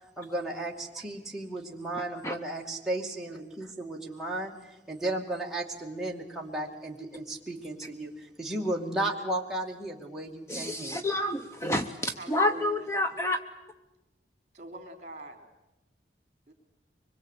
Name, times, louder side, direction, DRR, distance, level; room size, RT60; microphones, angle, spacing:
voice 1, 0.2-11.0, right 1 dB, ahead, -3 dB, 2.3 m, -34 dB
voice 2, 10.5-13.4, left 1 dB, 15° left, 7 dB, 0.9 m, -29 dB
voice 3, 12.2-12.9 14.5-15.4 16.5-16.6, right 2 dB, 40° right, 6 dB, 3.7 m, -43 dB
24.5 x 22.0 x 8.3 m, 1.0 s
head